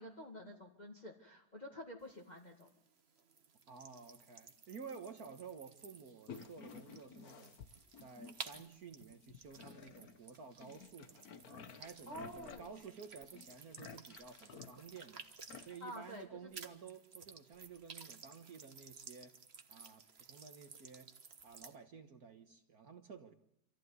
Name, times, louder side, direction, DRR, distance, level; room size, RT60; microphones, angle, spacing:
voice 1, 0.0-2.7 12.1-12.7 15.8-16.3, equal, 25° left, 0 dB, 2.3 m, -49 dB
sound 1, 2.0-16.2 16.5-21.8, right 5 dB, 40° right, 1.5 m, -55 dB
voice 2, 3.7-15.2 15.6-19.3 19.7-21.1 21.4-23.3, right 6 dB, 60° right, 6 dB, 1.7 m, -53 dB
sound 2, 6.3-8.6 8.9-10.2 10.6-16.2, left 6 dB, 60° left, 1.6 m, -54 dB
26.0 x 15.0 x 9.6 m, 0.81 s
omnidirectional pair, 1.9 m